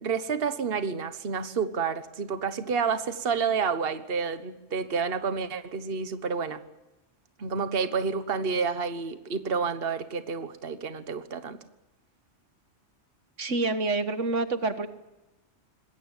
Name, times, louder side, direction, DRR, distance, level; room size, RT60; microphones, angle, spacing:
voice 1, 0.0-6.6 7.4-11.6, right 5 dB, 50° right, 11 dB, 1.5 m, -29 dB
voice 2, 13.4-14.9, right 3 dB, 75° right, 11 dB, 1.8 m, -27 dB
26.0 x 21.0 x 9.1 m, 1.0 s
omnidirectional pair, 1.3 m